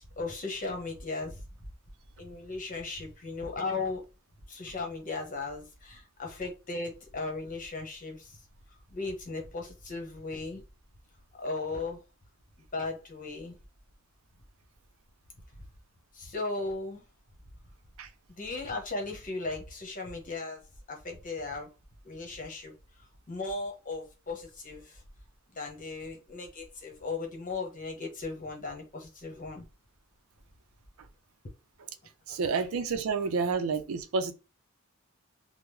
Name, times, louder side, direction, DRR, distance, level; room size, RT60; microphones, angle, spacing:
voice 1, 0.0-1.4 2.2-4.0 4.5-8.4 8.7-10.6 11.4-12.0 12.7-13.6 15.6-15.7 16.1-17.0 18.3-21.7 22.0-25.0 25.5-29.7 32.3-32.4, left 3 dB, 40° left, 1.0 m, -37 dB
voice 2, 32.3-34.3, right 4 dB, 85° right, 0.5 m, -29 dB
3.5 x 2.0 x 3.2 m
head